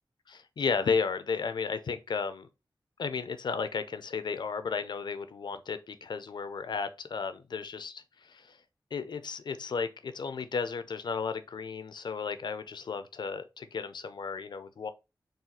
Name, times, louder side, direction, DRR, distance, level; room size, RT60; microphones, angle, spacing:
voice 1, 0.3-2.5 3.0-8.6 8.9-14.9, left 5 dB, 75° left, 0.5 m, -34 dB
4.0 x 2.3 x 4.1 m
wide cardioid pair, 95°, 8 cm